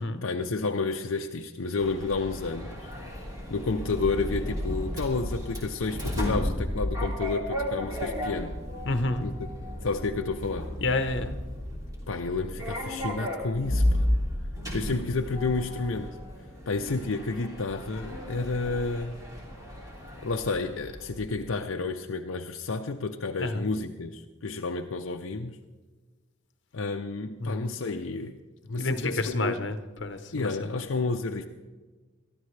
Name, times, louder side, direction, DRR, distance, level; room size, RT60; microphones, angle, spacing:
voice 1, 0.2-2.9 3.5-8.5 9.2-9.5 9.8-10.7 12.1-14.1 14.7-16.2 16.7-19.2 20.2-25.6 26.7-28.4 28.7-29.7 30.3-31.5, left 3 dB, 75° left, 3 dB, 0.6 m, -30 dB
Sliding door, 1.8-21.4, left 1 dB, 15° right, 3.2 m, -33 dB
voice 2, 8.9-9.3 10.8-11.4 23.4-23.7 27.4-27.6 28.8-30.8, left 2 dB, 60° left, 8 dB, 1.0 m, -29 dB
22.5 x 13.5 x 3.3 m, 1.3 s
head